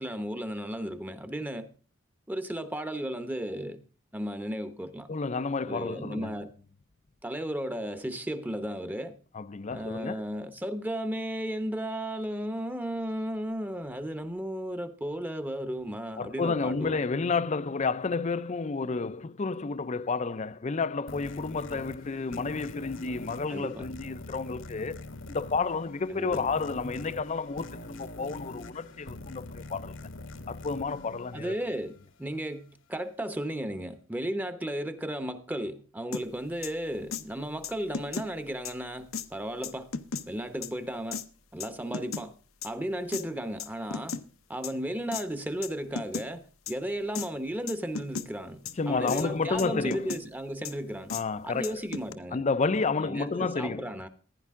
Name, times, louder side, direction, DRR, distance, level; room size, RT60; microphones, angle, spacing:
voice 1, 0.0-1.7 2.3-3.8 4.1-5.1 5.7-6.5 7.2-9.2 9.7-17.0 23.5-23.9 26.1-26.4 31.3-39.9 40.3-41.2 41.5-42.3 42.6-44.2 44.5-51.1 51.4-52.4 53.0-54.1, right 1 dB, 10° right, 0.8 m, -34 dB
voice 2, 5.1-6.4 9.3-10.2 16.2-30.0 30.5-31.6 48.8-50.1 51.1-51.8 52.3-53.9, left 4 dB, 35° left, 0.5 m, -31 dB
sound 1, 21.1-32.2, left 2 dB, 60° left, 1.2 m, -44 dB
sound 2, 36.1-36.2 36.6-36.7 37.1-37.2 37.6-38.3 38.7-38.8 39.1-39.3 39.6-40.2 40.6-40.7 41.1-41.2 41.6-42.3 42.6-42.7 43.1-43.2 43.6-44.2 44.6-44.7 45.1-45.2 45.6-45.7 46.0-46.3 46.7-46.8 47.2-47.3 47.7-48.3 48.7-48.8 49.1-49.3 49.6-50.2 50.6-50.7 51.1-51.2 51.6-52.1, left 5 dB, 80° left, 0.9 m, -35 dB
15.5 x 10.0 x 3.6 m
head